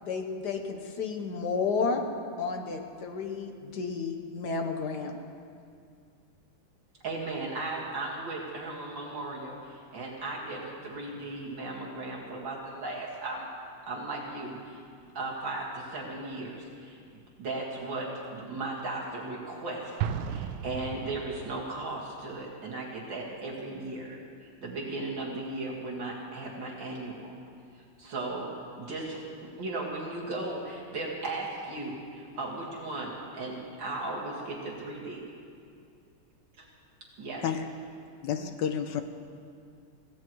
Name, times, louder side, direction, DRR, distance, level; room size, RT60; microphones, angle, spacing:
voice 1, 0.0-2.0 2.4-5.2, left 5 dB, 55° left, 4 dB, 1.5 m, -32 dB
voice 2, 7.0-13.5 13.9-14.8 15.1-20.0 20.3-27.3 28.0-35.2 37.2-37.4, right 2 dB, 60° right, -4 dB, 2.6 m, -36 dB
Explosion, 20.0-21.7, right 8 dB, 80° right, 1.4 m, -34 dB
voice 3, 38.2-39.0, left 8 dB, 70° left, 8 dB, 1.1 m, -30 dB
23.5 x 16.5 x 3.1 m, 2.3 s
omnidirectional pair, 2.3 m